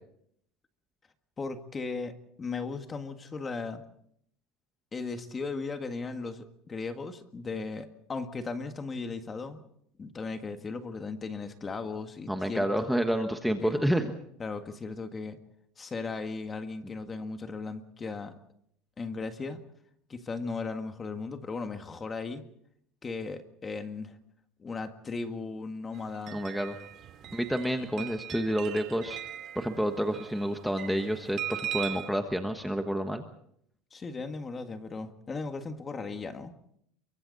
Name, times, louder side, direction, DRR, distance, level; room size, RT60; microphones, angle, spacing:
voice 1, 1.4-3.8 4.9-9.6 10.0-12.9 13.6-13.8 14.4-15.4 15.8-18.3 19.0-19.6 20.1-22.5 23.0-24.2 24.6-26.4 33.9-36.5, left 4 dB, 20° left, 7 dB, 1.8 m, -37 dB
voice 2, 12.3-14.1 26.3-26.8 27.3-29.2 29.5-33.2, equal, ahead, 5 dB, 1.3 m, -29 dB
sound 1, 25.9-32.1, right 11 dB, 40° right, 2.4 m, -40 dB
28.5 x 24.0 x 4.1 m, 0.69 s
cardioid pair, 150°, 0 cm